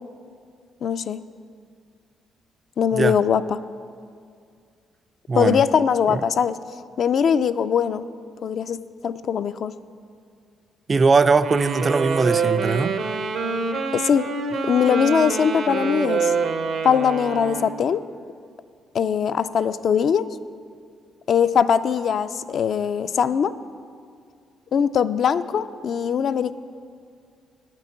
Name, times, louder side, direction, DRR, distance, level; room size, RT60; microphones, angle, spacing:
voice 1, 0.8-1.2 2.8-3.6 5.4-6.6 7.0-8.0 8.4-8.8 9.0-9.7 13.9-14.3 14.6-16.3 16.8-18.0 18.9-20.2 21.3-23.5 24.7-26.5, left 7 dB, 60° left, 0.3 m, -21 dB
voice 2, 5.3-5.6 6.1-6.2 10.9-13.0, right 4 dB, 35° right, 0.3 m, -20 dB
Wind instrument woodwind instrument, 11.4-17.9, right 5 dB, 65° right, 0.7 m, -26 dB
8.6 x 6.0 x 7.8 m
cardioid pair, 90°, 0 cm